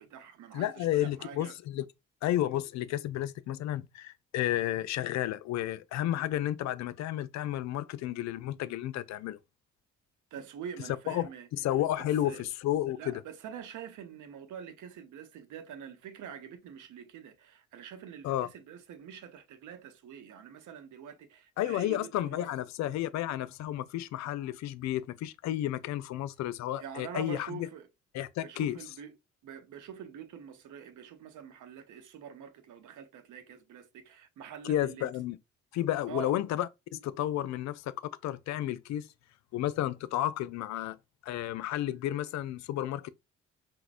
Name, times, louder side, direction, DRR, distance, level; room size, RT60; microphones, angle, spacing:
voice 1, 0.0-1.5 10.3-11.5 12.0-12.4 13.0-22.5 26.7-27.9 28.4-29.1 29.4-35.1 36.1-36.4, right 8 dB, 55° right, 0.8 m, -45 dB
voice 2, 0.5-1.9 2.2-9.4 11.1-13.2 18.2-18.5 21.6-27.7 28.1-28.8 34.6-35.4 35.7-39.1 39.5-41.0 41.2-43.1, left 13 dB, 50° left, 0.4 m, -32 dB
5.8 x 2.2 x 2.5 m
figure-of-eight pair, 40°, 36 cm